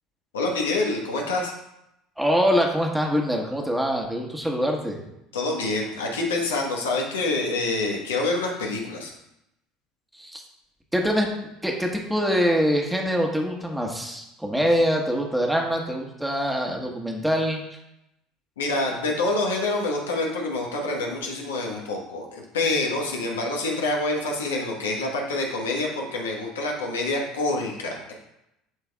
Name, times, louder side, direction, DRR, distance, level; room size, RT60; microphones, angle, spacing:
voice 1, 0.3-1.5 5.3-9.1 18.6-28.1, left 2 dB, 80° left, 0 dB, 1.2 m, -26 dB
voice 2, 2.2-5.0 10.2-10.4 10.9-11.3 11.6-17.6, equal, 5° right, 1 dB, 1.4 m, -24 dB
11.0 x 3.9 x 2.4 m, 0.85 s
hypercardioid pair, 70°, 0 cm